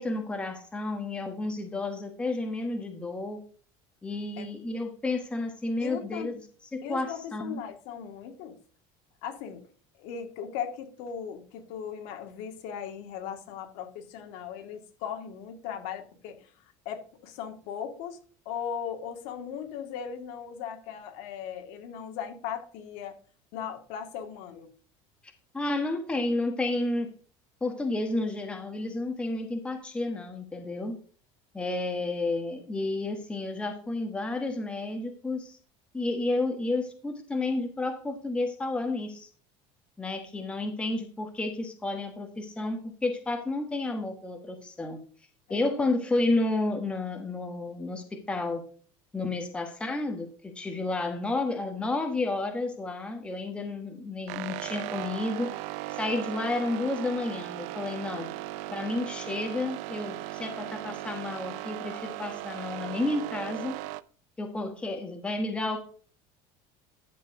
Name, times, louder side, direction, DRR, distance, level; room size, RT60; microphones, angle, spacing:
voice 1, 0.0-3.4 4.0-6.4 6.7-7.6 25.2-27.1 27.6-31.0 31.5-35.6 35.9-39.3 40.0-45.0 45.5-48.6 49.1-55.5 55.9-58.3 58.7-63.8 64.4-65.8, left 2 dB, 10° left, 5 dB, 1.2 m, -31 dB
voice 2, 5.8-6.4 6.8-8.6 9.2-9.7 10.0-18.2 18.5-23.2 23.5-24.7 45.5-45.7, left 8 dB, 65° left, 6 dB, 2.1 m, -38 dB
sound 1, 54.3-64.0, right 17 dB, 65° right, 0.5 m, -37 dB
11.5 x 7.2 x 3.6 m, 0.42 s
cardioid pair, 170°, 13 cm